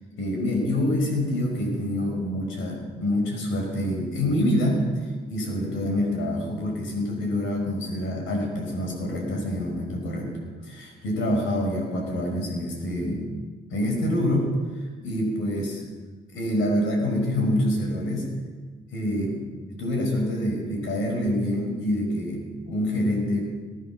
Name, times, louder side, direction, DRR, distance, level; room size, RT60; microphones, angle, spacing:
voice 1, 0.1-5.0 5.3-10.3 10.6-13.3 13.7-15.8 16.3-18.3 18.9-19.4 19.7-23.4, left 1 dB, 80° left, 1 dB, 5.7 m, -26 dB
20.0 x 11.0 x 6.2 m, 1.4 s
cardioid pair, 90°, 20 cm